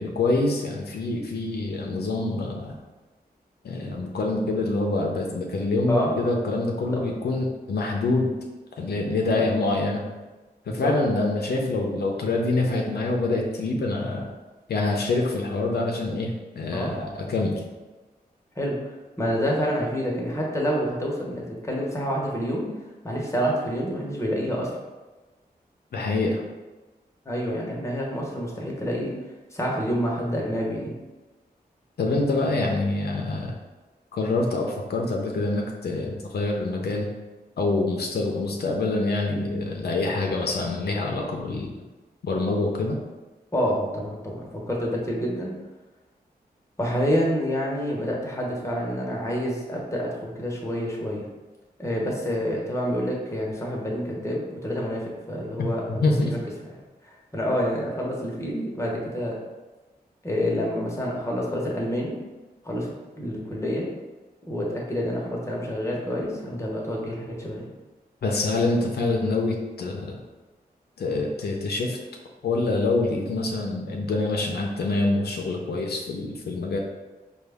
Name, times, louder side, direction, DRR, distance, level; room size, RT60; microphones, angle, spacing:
voice 1, 0.0-2.8 3.6-8.3 8.8-10.0 10.7-14.3 14.7-17.6 25.9-26.4 32.0-33.5 34.1-37.1 37.6-41.7 42.2-43.0 55.9-56.3 68.2-70.2 71.0-72.0 72.4-76.8, left 2 dB, 80° left, 0 dB, 0.5 m, -26 dB
voice 2, 19.2-22.7 23.0-24.7 27.2-29.1 29.5-30.9 43.5-45.5 46.8-51.3 51.8-55.0 55.3-56.4 57.0-59.4 60.2-62.2 62.6-63.9 64.5-67.6, equal, 15° left, -3 dB, 0.9 m, -28 dB
4.6 x 2.3 x 3.4 m, 1.2 s
wide cardioid pair, 90°, 16 cm